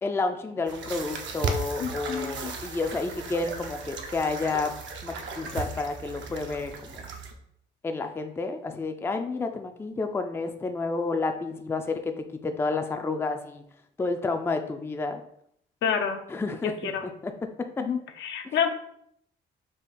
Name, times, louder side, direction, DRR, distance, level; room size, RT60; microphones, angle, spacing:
voice 1, 0.0-4.7 5.0-7.0 7.8-12.0 12.4-13.6 14.0-15.2 16.3-17.3 17.8-17.9, left 3 dB, 10° left, 6 dB, 0.4 m, -30 dB
sound 1, 0.6-7.3, right 4 dB, 65° right, 0.6 m, -36 dB
voice 2, 1.8-2.5 15.8-16.2 16.6-17.1 17.8-18.7, left 7 dB, 70° left, 6 dB, 0.5 m, -28 dB
3.7 x 2.3 x 4.1 m, 0.70 s
cardioid pair, 90°, 20 cm